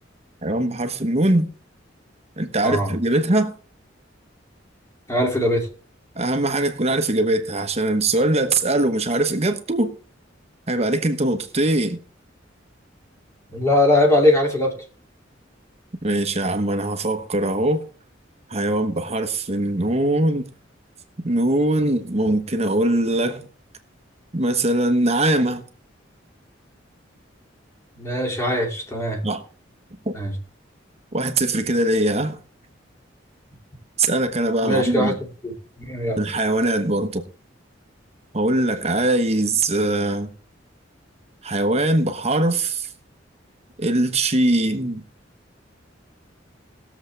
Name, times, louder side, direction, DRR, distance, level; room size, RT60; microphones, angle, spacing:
voice 1, 0.4-1.5 2.4-3.5 6.2-9.9 10.7-12.0 16.0-17.8 18.5-20.5 21.2-23.5 24.3-25.6 29.2-29.4 30.1-30.2 31.1-32.4 34.0-35.1 36.2-37.2 38.3-40.3 41.4-42.9 43.8-45.0, right 1 dB, 35° right, 1.2 m, -21 dB
voice 2, 2.6-2.9 5.1-5.7 13.5-14.7 28.0-29.2 30.1-30.3 34.6-35.1 35.4-36.2, left 1 dB, 15° left, 2.5 m, -21 dB
20.0 x 7.3 x 3.3 m
head